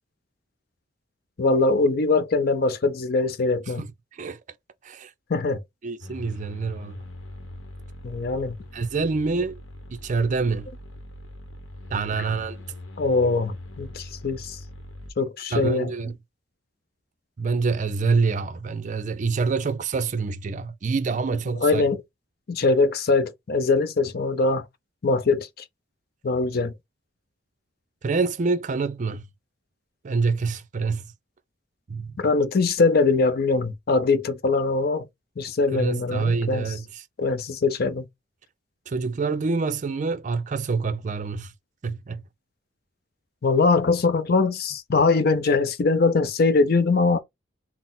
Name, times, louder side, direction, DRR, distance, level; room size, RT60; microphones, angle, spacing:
voice 1, 1.4-3.8 5.3-5.6 8.0-8.6 13.0-14.6 15.2-15.9 21.6-22.0 22.5-24.7 25.0-25.5 26.2-26.7 32.2-35.1 35.4-36.7 37.2-38.1 43.4-47.2, left 3 dB, 50° left, 0.5 m, -22 dB
voice 2, 3.8-4.4 4.8-5.1 5.8-7.0 8.7-9.6 10.0-10.7 11.9-12.6 15.5-16.1 17.4-21.8 28.0-29.3 30.0-31.0 31.9-32.2 35.7-37.0 38.9-41.5 41.8-42.2, right 4 dB, 40° right, 0.4 m, -26 dB
sound 1, 6.0-15.1, left 1 dB, 80° left, 0.8 m, -41 dB
4.0 x 2.0 x 3.8 m
head